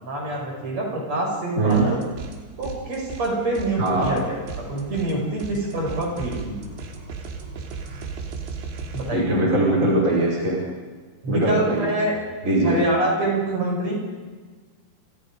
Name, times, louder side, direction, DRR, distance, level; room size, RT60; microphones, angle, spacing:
voice 1, 0.0-2.0 2.6-6.6 8.9-9.4 11.2-12.2 12.6-14.0, right 1 dB, 35° right, -1 dB, 7.3 m, -26 dB
voice 2, 1.6-1.9 3.8-4.1 9.1-10.6 11.3-12.1 12.4-12.8, right 2 dB, 15° right, -4 dB, 4.9 m, -21 dB
sound 1, 1.7-2.4 2.6-9.1, right 5 dB, 70° right, 5.0 m, -36 dB
30.0 x 26.0 x 5.2 m, 1.4 s
omnidirectional pair, 5.6 m